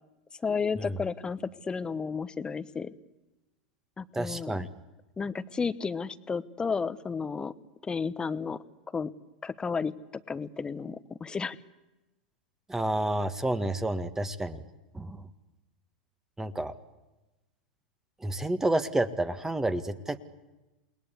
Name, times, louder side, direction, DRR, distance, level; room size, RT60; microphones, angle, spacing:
voice 1, 0.4-2.9 4.0-4.7 5.2-7.5 7.8-8.6 8.9-9.1 9.4-9.9 10.3-11.6, left 5 dB, 15° left, 15 dB, 1.0 m, -32 dB
voice 2, 4.1-4.7 12.7-14.6 14.9-15.2 16.4-16.7 18.2-20.2, right 1 dB, 10° right, 11 dB, 1.5 m, -29 dB
28.5 x 20.5 x 8.3 m, 1.1 s
hypercardioid pair, 95°, 5 cm